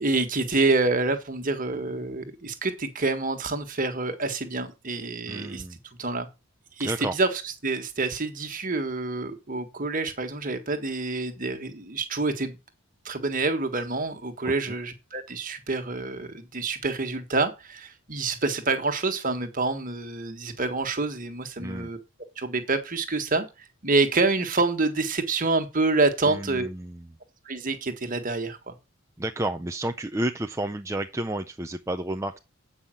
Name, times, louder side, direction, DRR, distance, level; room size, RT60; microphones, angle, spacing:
voice 1, 0.0-5.6 6.0-6.3 6.8-7.3 7.6-12.6 13.0-22.0 22.4-23.5 23.8-26.7 27.4-28.7, right 3 dB, 40° right, 1.5 m, -27 dB
voice 2, 5.3-5.8 6.8-7.1 14.4-14.5 21.6-21.9 26.3-27.1 29.2-32.4, right 1 dB, 15° right, 0.5 m, -31 dB
8.6 x 5.6 x 7.7 m
head